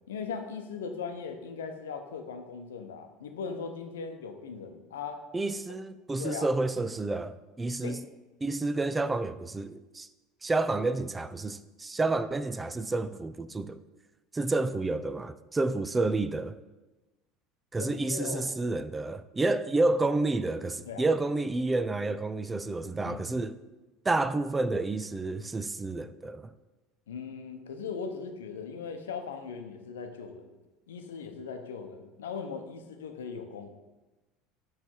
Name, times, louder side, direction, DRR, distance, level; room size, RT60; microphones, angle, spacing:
voice 1, 0.1-5.2 6.2-6.5 7.8-8.0 17.8-18.5 20.8-21.1 23.0-23.2 27.1-30.5 30.9-33.7, left 5 dB, 90° left, 0.7 m, -39 dB
voice 2, 5.3-8.0 8.4-10.1 10.4-13.8 14.3-16.6 17.7-23.6 24.1-26.5, right 2 dB, 15° right, 0.4 m, -29 dB
8.0 x 3.3 x 4.4 m
hypercardioid pair, 85°, 0 cm